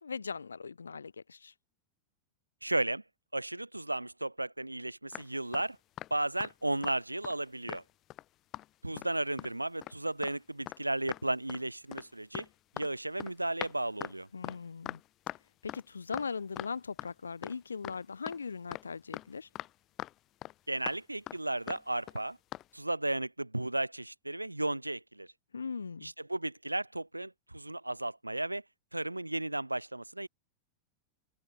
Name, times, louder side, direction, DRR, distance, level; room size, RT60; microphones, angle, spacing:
voice 1, 0.0-1.5 14.3-15.0 15.6-19.5 25.5-26.1, left 5 dB, 75° left, 5.4 m, -39 dB
voice 2, 2.6-3.0 3.3-5.8 6.1-7.8 8.8-12.5 12.7-14.3 20.7-22.4 22.7-25.3 26.0-28.6 28.9-30.3, right 1 dB, 85° right, 3.8 m, -34 dB
sound 1, 5.1-6.5 6.8-7.0 7.2-8.2 8.5-8.7 9.0-9.5 9.8-10.0 10.2-10.3 10.7-10.8 11.1-11.6 11.9-17.1 17.4-17.6 17.8-19.7 20.0-20.5 20.9-21.0 21.3-21.4 21.7-21.8 22.1-22.2 22.5-22.7, left 15 dB, 35° left, 4.9 m, -42 dB
figure-of-eight pair, 90°, 0 cm